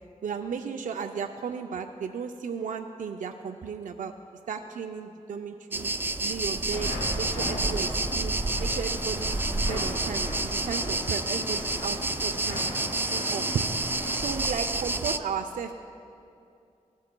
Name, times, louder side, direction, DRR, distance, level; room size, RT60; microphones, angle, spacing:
voice 1, 0.2-4.1 4.5-5.9 6.2-6.9 7.2-8.3 8.6-13.7 14.2-15.7, right 6 dB, 80° right, 5 dB, 0.4 m, -34 dB
sound 1, 5.7-15.2, right 2 dB, 15° right, 0.3 m, -29 dB
sound 2, 6.7-14.6, left 2 dB, 80° left, 1.6 m, -38 dB
16.5 x 12.0 x 2.2 m, 2.5 s
cardioid pair, 70°, 13 cm